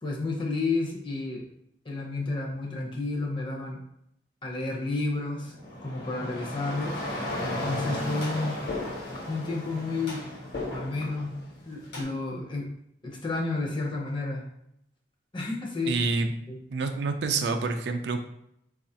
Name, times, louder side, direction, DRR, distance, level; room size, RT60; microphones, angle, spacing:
voice 1, 0.0-1.4 1.8-3.8 4.4-5.6 5.8-8.6 9.3-10.3 10.7-11.4 11.7-12.7 13.0-14.5 15.3-16.0 16.5-16.6, left 3 dB, 25° left, -1 dB, 0.6 m, -31 dB
sound 1, 5.4-12.0, left 1 dB, 65° left, 1.1 m, -35 dB
voice 2, 15.9-16.3 16.7-18.2, right 4 dB, 65° right, 6 dB, 0.3 m, -27 dB
3.8 x 2.4 x 2.7 m, 0.75 s
head